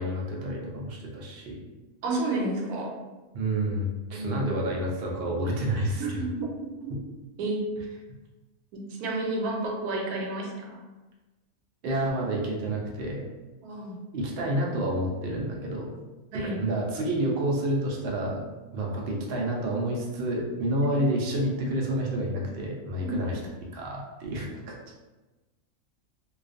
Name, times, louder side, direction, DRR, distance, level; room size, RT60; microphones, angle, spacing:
voice 1, 0.0-1.6 3.3-6.2 11.8-13.3 14.1-15.9 16.4-18.4 18.7-23.4 23.7-24.5, right 1 dB, 75° right, -2 dB, 0.5 m, -29 dB
voice 2, 2.0-3.0 4.1-4.4 5.9-6.5 6.8-6.9 7.4-7.7 8.7-10.8 13.6-14.0 16.3-16.6 20.9-21.0 23.0-23.1, right 2 dB, 90° right, 0 dB, 1.1 m, -31 dB
2.3 x 2.3 x 2.4 m, 1.2 s
omnidirectional pair, 1.5 m